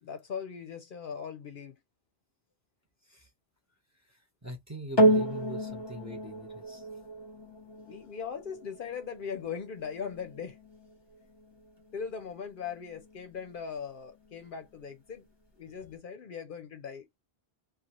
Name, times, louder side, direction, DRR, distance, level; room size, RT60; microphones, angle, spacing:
voice 1, 0.0-1.8 7.9-10.6 11.9-15.3 15.6-17.1, left 6 dB, 60° left, 0.7 m, -39 dB
voice 2, 4.4-6.8, right 1 dB, 20° right, 0.8 m, -43 dB
sound 1, 5.0-13.5 14.3-14.4, right 1 dB, 25° left, 0.8 m, -31 dB
2.4 x 2.4 x 2.9 m
omnidirectional pair, 1.1 m